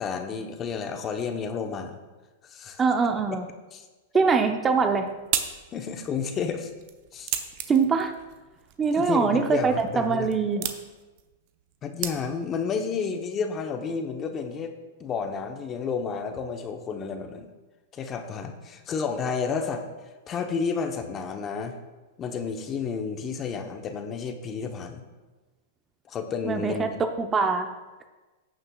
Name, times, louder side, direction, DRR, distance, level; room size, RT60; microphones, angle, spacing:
voice 1, 0.0-2.0 2.4-2.8 3.7-3.8 5.7-6.7 7.1-7.3 8.9-10.3 11.8-14.7 15.0-17.5 17.9-19.9 20.3-21.8 22.2-25.0 26.1-27.0, left 5 dB, 30° left, 6 dB, 0.9 m, -31 dB
voice 2, 2.8-3.4 4.1-5.1 7.7-8.1 8.8-10.7 26.4-26.9 27.2-27.7, right 5 dB, 20° right, 6 dB, 0.6 m, -23 dB
sound 1, 4.6-12.6, right 10 dB, 55° right, 0.8 m, -37 dB
15.0 x 6.6 x 2.4 m, 1.2 s
hypercardioid pair, 120°, 0 cm